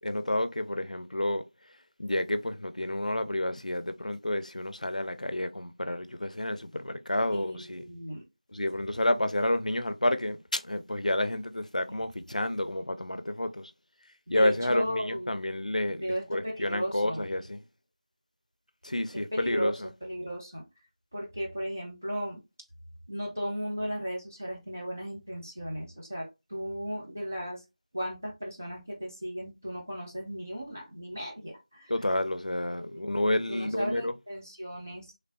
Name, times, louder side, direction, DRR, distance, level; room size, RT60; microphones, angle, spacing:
voice 1, 0.0-1.4 2.0-7.8 8.5-13.7 14.3-17.6 18.8-19.9 31.9-34.1, left 1 dB, 85° left, 0.5 m, -30 dB
voice 2, 7.3-8.2 11.9-12.0 14.3-15.4 15.9-17.3 19.3-19.7 20.0-20.6 21.1-22.4 23.1-27.6 27.9-31.9 32.8-33.0 33.2-35.1, equal, 25° right, 0.7 m, -36 dB
3.2 x 2.5 x 2.4 m
figure-of-eight pair, 180°, 4 cm